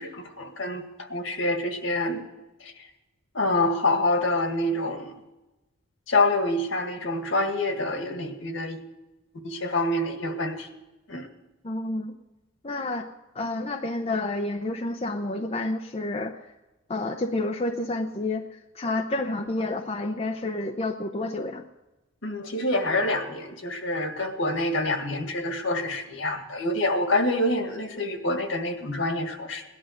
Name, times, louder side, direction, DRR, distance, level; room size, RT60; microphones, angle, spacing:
voice 1, 0.0-2.2 2.6-2.7 3.3-5.1 6.1-8.8 9.3-10.7 11.1-11.3 22.2-29.6, left 2 dB, 65° left, 5 dB, 1.9 m, -26 dB
voice 2, 11.6-12.1 12.6-13.1 13.3-16.4 16.9-18.5 18.7-21.7, left 2 dB, 30° left, 4 dB, 0.7 m, -29 dB
17.5 x 11.5 x 6.6 m, 1.0 s
head